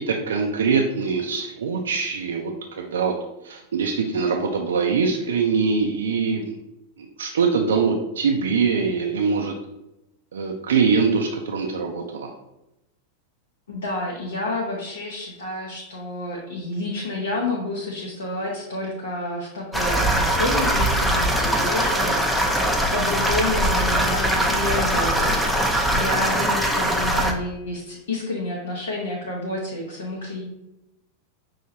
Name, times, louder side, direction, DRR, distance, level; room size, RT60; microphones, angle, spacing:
voice 1, 0.0-3.1 3.4-6.6 7.2-9.5 10.3-12.3, right 5 dB, 65° right, 1 dB, 0.4 m, -23 dB
voice 2, 13.7-30.4, left 2 dB, 70° left, -3 dB, 0.7 m, -29 dB
sound 1, 19.7-27.3, right 1 dB, ahead, 0.5 m, -21 dB
5.5 x 2.8 x 2.7 m, 0.90 s
figure-of-eight pair, 90°, 0 cm